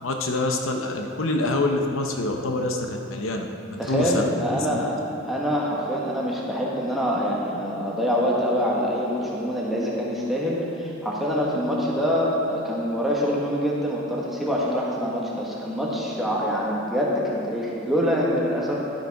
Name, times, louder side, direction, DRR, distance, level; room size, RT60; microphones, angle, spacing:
voice 1, 0.0-3.5 3.9-4.2 4.5-4.8, left 2 dB, 70° left, 3 dB, 0.8 m, -26 dB
voice 2, 3.8-5.0 5.2-19.0, equal, ahead, -5 dB, 1.3 m, -25 dB
11.5 x 6.7 x 4.7 m, 2.8 s
head